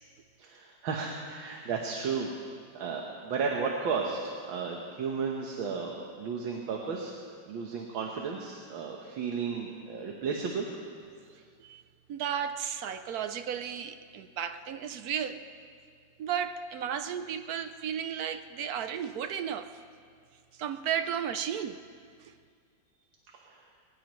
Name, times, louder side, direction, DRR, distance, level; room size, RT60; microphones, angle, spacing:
voice 1, 0.4-2.3 2.7-7.2 7.5-10.7 11.3-11.4 23.4-23.6, right 5 dB, 85° right, 0 dB, 1.9 m, -34 dB
voice 2, 12.1-15.4 16.2-19.8 20.5-21.8 22.2-22.3, right 8 dB, 70° right, 10 dB, 0.9 m, -34 dB
21.0 x 19.5 x 3.1 m, 2.1 s
omnidirectional pair, 2.1 m